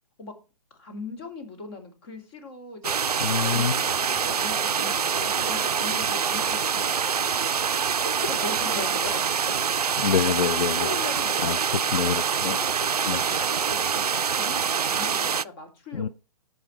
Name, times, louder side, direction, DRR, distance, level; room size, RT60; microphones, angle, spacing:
voice 1, 0.7-2.9 3.2-7.6 8.0-9.2 10.8-11.6 12.6-14.0 14.3-16.1, left 3 dB, 40° left, 2.7 m, -39 dB
sound 1, 2.8-15.4, right 6 dB, 75° right, 0.4 m, -25 dB
voice 2, 3.2-3.7 10.0-10.9 11.4-11.6 11.9-12.6 13.1-13.2 15.9-16.1, left 7 dB, 65° left, 0.5 m, -26 dB
13.5 x 5.2 x 4.5 m
figure-of-eight pair, 130°, 20 cm